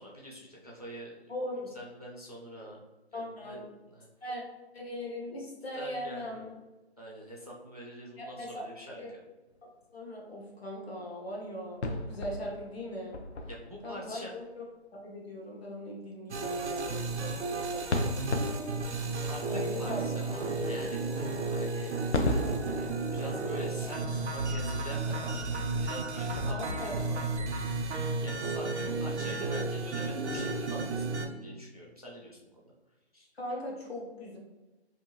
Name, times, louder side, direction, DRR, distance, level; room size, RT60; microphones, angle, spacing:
voice 1, 0.0-1.3 1.7-2.8 3.1-3.6 3.9-4.1 5.7-6.4 7.0-9.2 13.5-14.3 19.3-22.0 22.8-25.5 25.8-27.5 28.2-32.6 33.1-33.3, equal, 35° right, -3 dB, 0.4 m, -45 dB
voice 2, 1.3-1.7 3.1-3.7 4.2-4.4 4.7-6.5 8.2-8.6 8.9-9.1 9.9-13.1 13.8-14.6 14.9-18.2 19.5-20.2 26.4-27.0 33.3-34.4, left 1 dB, 65° left, -2 dB, 0.9 m, -40 dB
sound 1, 11.8-14.1 17.9-19.8 22.1-25.0 25.5-25.7 25.9-27.7, left 2 dB, 85° left, 0.5 m, -35 dB
sound 2, 16.3-31.3, right 3 dB, 85° right, 0.6 m, -33 dB
sound 3, 18.3-27.4, right 1 dB, 25° left, 0.6 m, -52 dB
2.7 x 2.3 x 2.7 m, 1.1 s
figure-of-eight pair, 170°, 33 cm